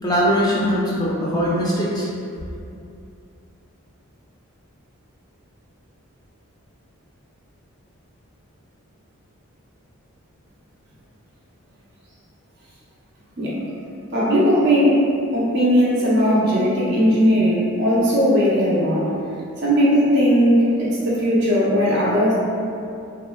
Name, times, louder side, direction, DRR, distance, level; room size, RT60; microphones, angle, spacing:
voice 1, 0.0-2.1, equal, 15° left, -6 dB, 0.4 m, -21 dB
voice 2, 14.1-15.1 15.3-19.1 19.6-22.3, equal, 50° right, -7 dB, 0.7 m, -18 dB
3.5 x 2.1 x 2.2 m, 2.6 s
head